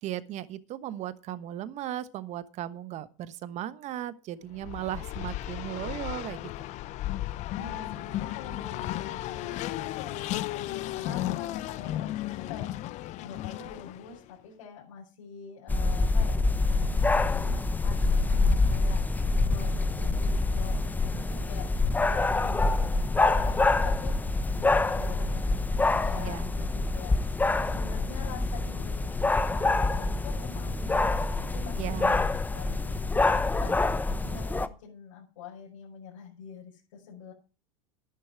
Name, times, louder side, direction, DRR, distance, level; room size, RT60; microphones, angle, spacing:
voice 1, 0.0-6.5 26.2-26.5 31.8-32.2, right 12 dB, 45° right, 1.1 m, -36 dB
Race car auto racing, 4.5-14.2, left 14 dB, 45° left, 0.6 m, -34 dB
voice 2, 7.5-16.4 16.8-19.0 19.5-21.7 22.1-22.9 23.3-25.5 25.8-29.1 29.5-31.1 31.4-32.0 32.5-37.3, left 6 dB, 75° left, 5.5 m, -46 dB
sound 1, 15.7-34.7, left 3 dB, 10° left, 0.8 m, -26 dB
11.5 x 10.5 x 4.6 m
hypercardioid pair, 105°, 17 cm